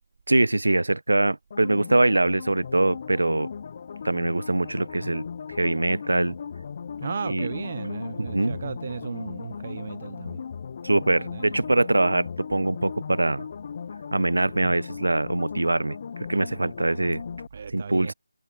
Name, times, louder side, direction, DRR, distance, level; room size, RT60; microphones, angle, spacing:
voice 1, 0.3-3.5 4.0-6.4 7.2-7.5 8.2-8.6 10.8-13.5 14.1-17.2 17.7-18.1, right 2 dB, 85° right, 0.7 m, -23 dB
sound 1, 1.5-17.5, left 6 dB, 30° left, 0.6 m, -37 dB
voice 2, 7.0-10.4 11.1-11.5 17.5-18.1, right 5 dB, 35° right, 0.6 m, -35 dB
figure-of-eight pair, 170°, 0 cm